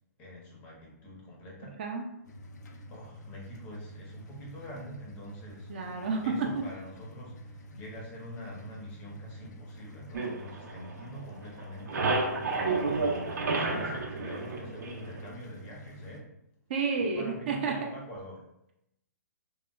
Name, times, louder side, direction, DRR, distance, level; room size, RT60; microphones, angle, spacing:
voice 1, 0.2-1.8 2.9-5.7 6.2-12.1 12.8-16.3 17.0-18.4, equal, 15° left, -2 dB, 0.5 m, -45 dB
sound 1, 2.2-16.2, equal, 75° left, 0.4 m, -48 dB
voice 2, 5.7-6.5 16.7-17.9, right 4 dB, 35° right, 2 dB, 0.4 m, -30 dB
sound 2, 10.1-11.3 11.6-15.3, right 3 dB, 85° right, 0.6 m, -31 dB
3.6 x 2.1 x 2.2 m, 0.83 s
hypercardioid pair, 165°, 9 cm